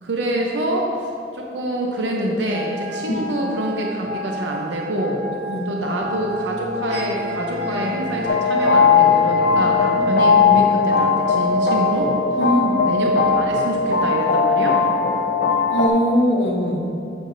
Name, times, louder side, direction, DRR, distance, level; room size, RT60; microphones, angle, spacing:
voice 1, 0.0-5.2 5.7-12.1 12.8-14.8, right 1 dB, 80° right, 0 dB, 0.8 m, -26 dB
sound 1, 2.5-8.9, left 1 dB, 40° right, 1.4 m, -32 dB
sound 2, 6.0-12.0, left 4 dB, 20° right, 0.8 m, -33 dB
sound 3, 8.3-15.9, left 5 dB, 50° left, 0.5 m, -18 dB
voice 2, 12.4-12.9 15.7-16.9, equal, 75° left, 1 dB, 0.9 m, -21 dB
9.0 x 8.1 x 2.6 m, 2.7 s
head